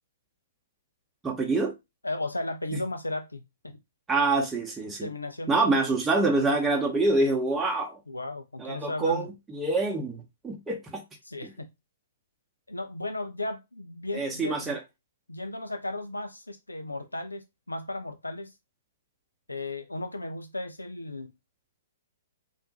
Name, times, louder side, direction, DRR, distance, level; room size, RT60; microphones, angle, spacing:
voice 1, 1.2-1.7 2.7-2.8 4.1-5.1 5.5-8.0 8.6-11.0 11.4-11.5 14.1-14.8, right 3 dB, 10° right, 0.8 m, -26 dB
voice 2, 2.0-3.8 5.0-5.7 8.1-9.3 11.2-11.7 12.7-14.8 15.3-18.5 19.5-21.3, left 2 dB, 90° left, 0.4 m, -35 dB
3.5 x 2.5 x 2.9 m
figure-of-eight pair, 120°, 0 cm